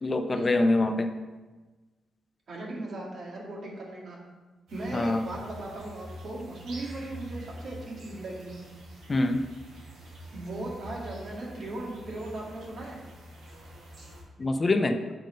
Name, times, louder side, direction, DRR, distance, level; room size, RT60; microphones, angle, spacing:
voice 1, 0.0-1.1 4.9-5.2 9.1-9.4 14.4-15.0, left 2 dB, 35° left, 8 dB, 0.6 m, -24 dB
voice 2, 2.5-4.2 4.7-8.6 10.3-13.0, right 2 dB, 60° right, -3 dB, 2.0 m, -37 dB
sound 1, 4.7-14.2, equal, 80° right, 2.1 m, -46 dB
7.6 x 3.6 x 5.2 m, 1.3 s
supercardioid pair, 55°, 0 cm